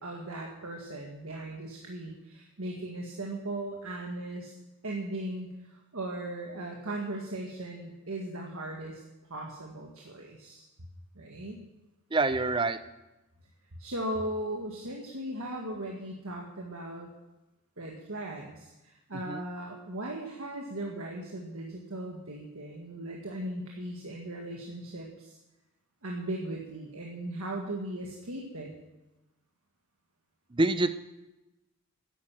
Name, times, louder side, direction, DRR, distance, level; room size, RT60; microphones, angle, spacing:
voice 1, 0.0-4.5 4.8-9.0 9.3-10.6 11.2-11.6 13.8-17.1 17.8-25.4 26.0-28.7, right 1 dB, 70° right, -1 dB, 1.6 m, -38 dB
voice 2, 12.1-12.8 19.3-19.4 30.5-30.9, right 2 dB, 20° right, 12 dB, 0.5 m, -26 dB
11.0 x 9.2 x 7.3 m, 1.0 s
head